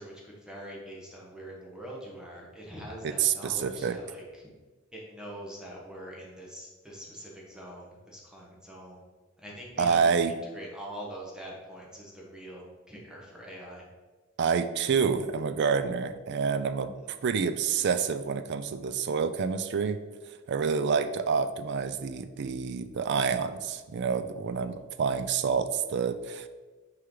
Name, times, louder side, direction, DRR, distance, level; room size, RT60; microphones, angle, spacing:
voice 1, 0.0-4.5 4.9-9.0 9.4-10.1 10.5-13.9, equal, 5° right, -3 dB, 1.1 m, -44 dB
voice 2, 3.0-4.0 9.8-10.3 14.4-16.9 17.2-20.0 20.5-26.5, right 6 dB, 55° right, 11 dB, 0.4 m, -28 dB
6.4 x 4.5 x 3.8 m, 1.3 s
head